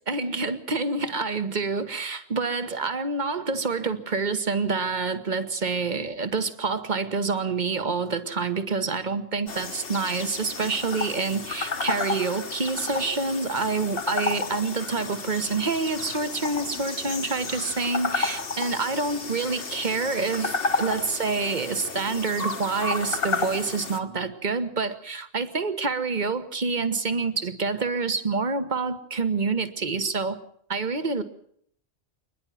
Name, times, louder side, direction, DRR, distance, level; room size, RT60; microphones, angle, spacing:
voice 1, 0.1-30.4 30.7-31.2, right 4 dB, 45° right, 11 dB, 1.4 m, -27 dB
sound 1, 9.5-24.0, left 4 dB, 60° left, 1.6 m, -32 dB
26.5 x 10.5 x 9.2 m, 0.66 s
omnidirectional pair, 1.1 m